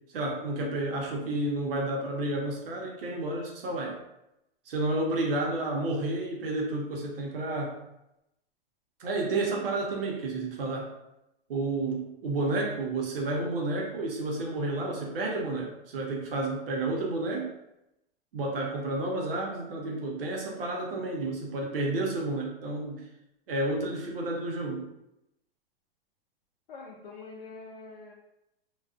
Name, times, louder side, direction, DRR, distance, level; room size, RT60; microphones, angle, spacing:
voice 1, 0.1-4.0 4.7-7.8 9.0-10.9 11.5-17.5 18.3-23.0 23.5-24.9, right 2 dB, 70° right, -1 dB, 0.8 m, -31 dB
voice 2, 26.7-28.1, left 3 dB, 55° left, -4 dB, 0.5 m, -45 dB
2.4 x 2.3 x 2.4 m, 0.88 s
supercardioid pair, 175°, 30 cm